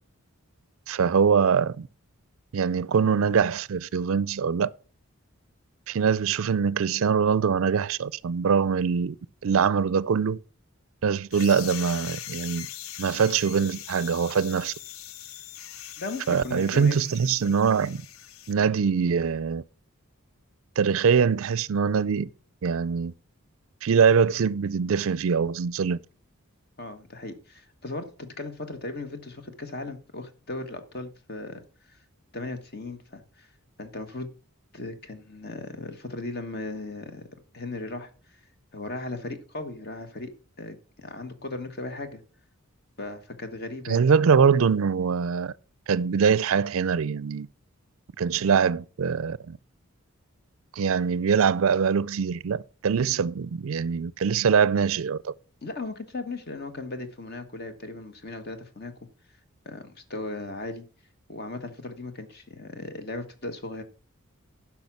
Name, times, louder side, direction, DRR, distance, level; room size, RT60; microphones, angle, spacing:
voice 1, 0.9-1.9 2.5-4.7 5.9-9.2 9.4-10.4 11.0-12.7 13.0-14.7 16.3-18.0 18.5-19.6 20.8-22.3 22.6-23.1 23.8-26.0 43.9-45.5 45.9-47.5 48.2-49.6 50.8-55.3, right 6 dB, 65° right, 0.4 m, -23 dB
sound 1, 11.3-18.5, left 11 dB, 70° left, 0.5 m, -41 dB
voice 2, 16.0-17.0 26.8-31.6 31.9-32.0 32.3-33.5 33.8-34.3 34.7-37.2 37.5-38.4 38.7-40.3 40.6-42.2 43.0-44.0 55.6-58.9 59.6-60.8 61.3-63.8, left 2 dB, 45° left, 1.2 m, -37 dB
10.5 x 5.9 x 5.8 m
head